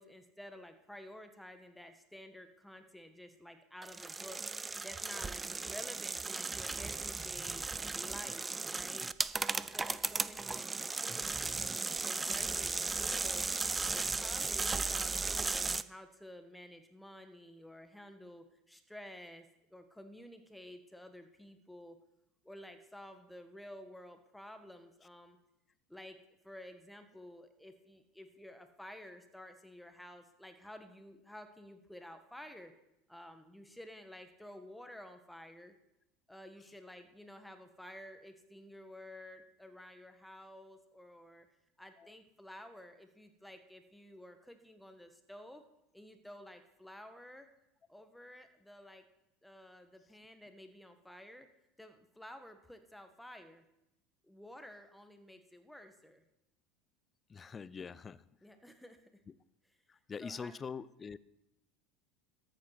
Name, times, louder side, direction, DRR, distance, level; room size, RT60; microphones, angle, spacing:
voice 1, 0.0-4.4 4.8-7.6 7.9-9.1 9.5-10.7 11.0-13.4 13.9-19.4 19.7-22.0 22.4-25.4 25.9-26.2 26.4-32.7 33.1-35.7 36.3-41.5 41.8-45.6 45.9-47.5 47.9-49.0 49.4-51.5 51.8-53.6 54.2-56.2 58.4-59.0 60.2-60.5, left 1 dB, 5° left, 8 dB, 1.7 m, -52 dB
sound 1, 3.8-15.8, right 3 dB, 20° right, 0.5 m, -36 dB
voice 2, 57.3-58.2 59.9-61.2, left 6 dB, 25° left, 19 dB, 0.6 m, -44 dB
13.5 x 7.8 x 6.0 m, 0.87 s
hypercardioid pair, 85°, 0 cm